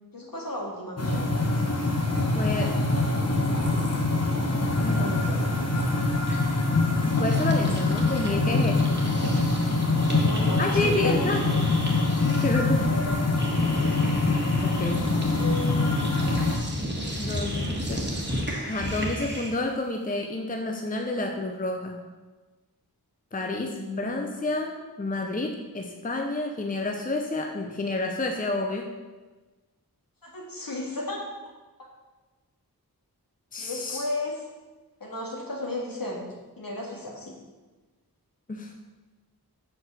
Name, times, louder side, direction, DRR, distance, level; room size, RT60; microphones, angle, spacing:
voice 1, 0.1-1.2 4.8-5.4 9.8-11.2 12.9-13.3 15.1-15.9 17.3-17.9 23.3-24.1 30.2-31.2 33.6-34.4 35.0-36.2 36.6-37.4, left 2 dB, 60° left, -2 dB, 2.0 m, -35 dB
sound 1, 1.0-16.6, left 2 dB, 40° left, 1.1 m, -24 dB
sound 2, 1.8-1.9 2.1-8.3 8.6-19.7, equal, 30° right, 1.6 m, -35 dB
voice 2, 2.3-2.8 4.8-5.2 7.0-9.0 10.6-11.4 12.4-12.9 14.6-15.1 17.2-18.1 18.7-22.0 23.3-28.9 33.5-34.0 38.5-38.7, left 2 dB, 20° left, 3 dB, 0.7 m, -29 dB
5.9 x 5.1 x 6.3 m, 1.2 s
wide cardioid pair, 50°, 39 cm